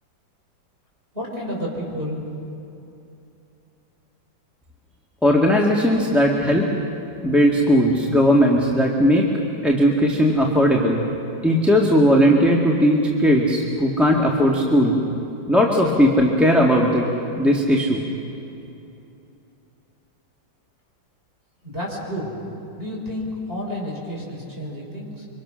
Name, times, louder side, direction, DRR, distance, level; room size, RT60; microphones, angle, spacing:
voice 1, 1.1-2.2 21.6-22.4 22.8-25.3, equal, 30° right, -2 dB, 5.7 m, -30 dB
voice 2, 5.2-6.7 7.2-9.3 9.6-11.0 11.4-15.0 15.5-17.1 17.3-18.0, equal, ahead, -2 dB, 1.7 m, -17 dB
27.5 x 25.0 x 6.4 m, 2.8 s
omnidirectional pair, 2.1 m